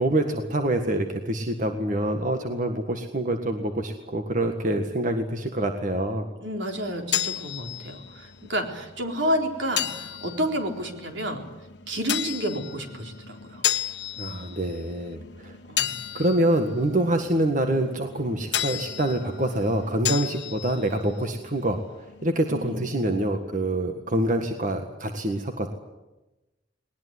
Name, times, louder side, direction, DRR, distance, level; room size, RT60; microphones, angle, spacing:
voice 1, 0.0-6.3 14.2-15.6 16.1-21.8 22.2-25.7, right 1 dB, 45° right, 5 dB, 1.7 m, -26 dB
voice 2, 6.4-11.4 11.9-13.6 15.7-15.9 22.5-22.8, equal, 75° right, 3 dB, 4.0 m, -30 dB
sound 1, 6.7-22.2, left 11 dB, 65° left, 1.4 m, -34 dB
20.5 x 20.0 x 9.6 m, 1.0 s
head